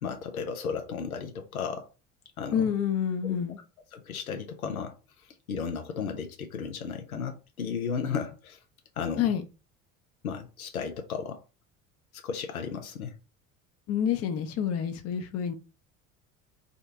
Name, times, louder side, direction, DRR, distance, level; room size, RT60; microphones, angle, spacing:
voice 1, 0.0-1.9 2.4-2.7 3.2-3.3 3.9-4.9 5.5-8.6 9.0-9.3 10.2-11.4 12.2-13.1, left 6 dB, 90° left, 0.6 m, -34 dB
voice 2, 2.5-3.6 9.2-9.4 13.9-15.5, left 8 dB, 35° left, 0.6 m, -28 dB
3.6 x 2.2 x 2.7 m
figure-of-eight pair, 60°, 41 cm